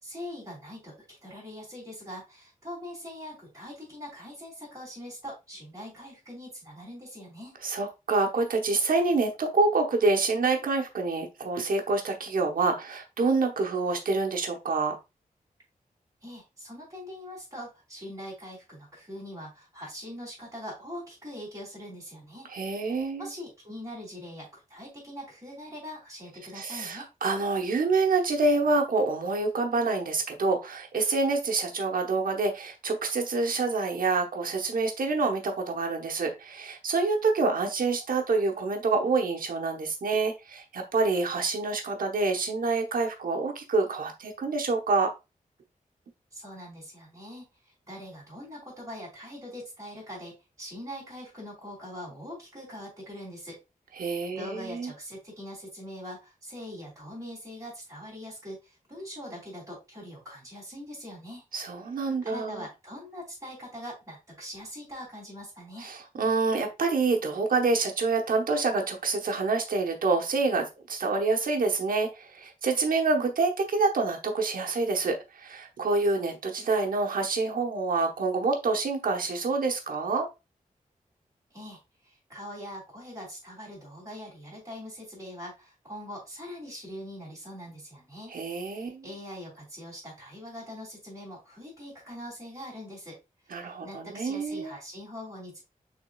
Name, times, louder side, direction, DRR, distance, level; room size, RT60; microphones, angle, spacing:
voice 1, 0.0-7.5 16.2-22.5 22.8-27.1 46.3-53.6 54.3-61.4 62.2-65.9 81.5-93.2 93.4-95.6, equal, 25° right, -8 dB, 2.8 m, -42 dB
voice 2, 7.6-14.9 22.5-23.3 26.5-45.1 54.0-54.9 61.5-62.6 65.8-80.3 88.3-89.0 93.5-94.7, right 3 dB, 80° right, 2 dB, 1.0 m, -27 dB
6.2 x 3.7 x 2.3 m, 0.26 s
wide cardioid pair, 105°, 14 cm